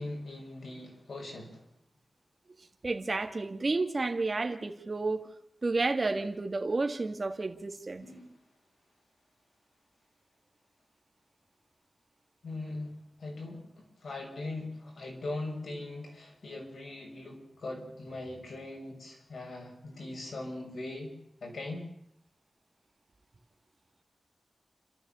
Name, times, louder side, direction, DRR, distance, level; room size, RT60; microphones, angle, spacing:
voice 1, 0.0-1.6 8.0-8.3 12.4-21.1 21.4-21.9, left 2 dB, 80° left, 7.1 m, -40 dB
voice 2, 2.8-5.3 5.6-8.1, right 3 dB, 40° right, 1.9 m, -31 dB
30.0 x 14.0 x 7.1 m
wide cardioid pair, 105°, 0 cm